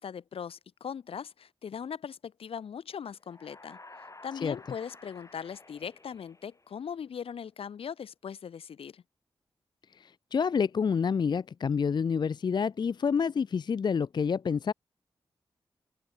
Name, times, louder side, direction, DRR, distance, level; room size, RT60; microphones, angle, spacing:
voice 1, 0.0-3.8 4.2-9.0, left 7 dB, 80° left, 2.8 m, -40 dB
sound 1, 3.2-7.1, left 2 dB, 35° left, 6.6 m, -52 dB
voice 2, 9.9-14.7, left 6 dB, 50° left, 0.4 m, -28 dB
open air
cardioid pair, 45°, 10 cm